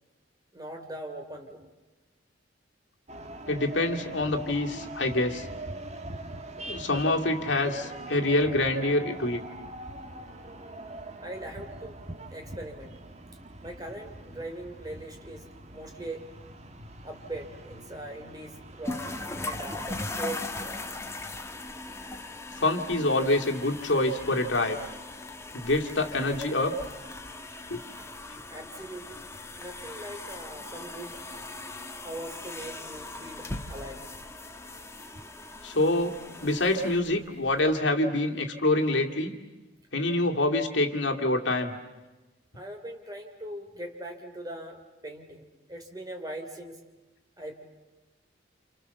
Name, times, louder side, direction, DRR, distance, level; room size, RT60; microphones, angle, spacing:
voice 1, 0.5-1.7 11.2-12.0 12.3-12.9 13.6-16.3 17.0-19.1 19.4-20.9 28.5-29.2 29.6-31.5 32.0-34.0 42.5-44.8 45.0-46.8 47.4-47.6, right 1 dB, 20° right, 3 dB, 3.2 m, -41 dB
sound 1, 3.1-19.5, right 2 dB, 35° right, 1.5 m, -43 dB
voice 2, 3.5-5.5 6.6-9.4 22.6-24.8 25.5-26.7 27.7-27.8 35.6-36.1 36.4-39.3 39.9-41.7, left 2 dB, 65° left, 2 dB, 2.4 m, -26 dB
sound 2, 18.8-37.7, left 2 dB, 15° left, 1.2 m, -39 dB
29.5 x 28.5 x 7.0 m, 1.1 s
head